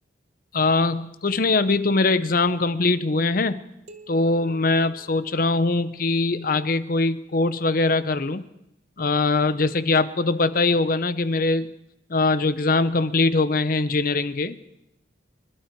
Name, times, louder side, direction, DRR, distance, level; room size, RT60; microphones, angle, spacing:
voice 1, 0.5-3.6 4.1-8.4 9.0-11.7 12.1-14.6, left 3 dB, 45° left, 14 dB, 0.7 m, -22 dB
sound 1, 3.9-6.3, right 3 dB, 35° right, 1.0 m, -49 dB
25.0 x 12.0 x 4.6 m, 0.87 s
head